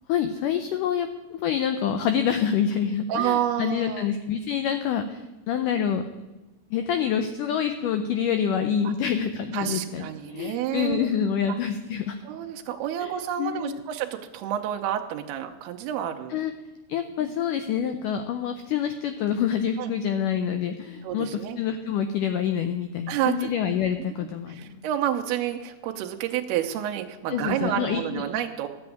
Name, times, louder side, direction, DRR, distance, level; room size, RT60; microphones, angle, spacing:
voice 1, 0.1-6.0 6.7-12.2 13.0-13.8 16.3-16.5 16.9-24.7 27.3-28.2, left 8 dB, 90° left, 8 dB, 1.8 m, -27 dB
voice 2, 3.1-4.1 8.8-8.9 9.5-11.1 11.5-11.6 12.2-16.4 17.2-17.3 19.8-19.9 21.0-21.6 23.1-23.5 24.0-28.7, right 10 dB, 85° right, 4 dB, 2.7 m, -29 dB
13.5 x 7.0 x 9.3 m, 1.1 s
omnidirectional pair, 4.6 m